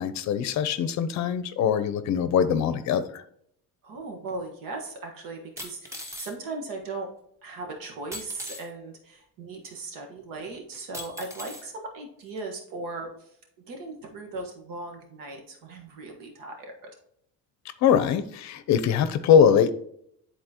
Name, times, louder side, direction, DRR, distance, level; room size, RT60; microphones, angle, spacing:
voice 1, 0.0-3.2 17.8-19.7, left 8 dB, 55° left, 13 dB, 0.6 m, -22 dB
voice 2, 3.8-7.1 7.4-13.3 13.7-16.7, right 3 dB, 70° right, 2 dB, 1.5 m, -38 dB
sound 1, 4.3-4.4 5.6-6.3 8.1-8.7 9.6-9.7 10.9-11.7 12.4-12.5, left 1 dB, 10° right, 1.0 m, -39 dB
10.5 x 4.1 x 2.9 m, 0.70 s
cardioid pair, 145°, 35 cm